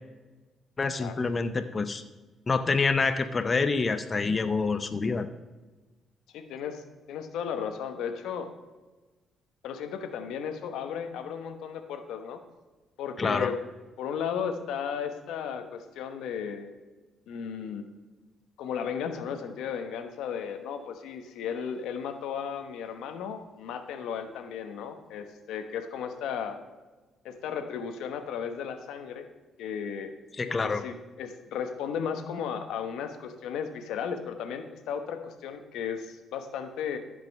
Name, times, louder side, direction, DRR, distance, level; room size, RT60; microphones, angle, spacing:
voice 1, 0.8-2.0 2.5-5.3 13.2-13.5 30.4-30.8, left 4 dB, 30° left, 9 dB, 0.6 m, -27 dB
voice 2, 6.3-6.8 7.1-8.5 9.6-12.4 13.0-13.6 14.0-16.7 17.3-17.8 18.6-26.6 27.2-29.3 29.6-30.1 30.6-37.0, left 7 dB, 85° left, 7 dB, 1.0 m, -35 dB
14.0 x 5.3 x 5.3 m, 1.2 s
cardioid pair, 90°, 0 cm